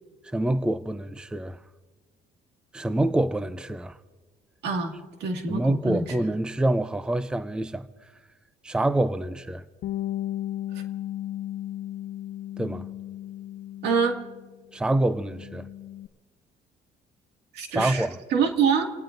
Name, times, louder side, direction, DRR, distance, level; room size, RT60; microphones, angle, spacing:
voice 1, 0.3-1.6 2.7-4.0 5.5-7.9 8.6-9.6 12.6-12.9 14.7-15.7 17.7-18.2, right 1 dB, 5° right, 0.5 m, -26 dB
voice 2, 4.6-4.9 5.2-6.1 13.8-14.2 17.5-18.0 18.3-18.9, right 5 dB, 80° right, 2.2 m, -25 dB
Bass guitar, 9.8-14.5 14.9-16.1, left 13 dB, 60° left, 0.5 m, -35 dB
29.5 x 18.5 x 2.6 m
cardioid pair, 110°, 17 cm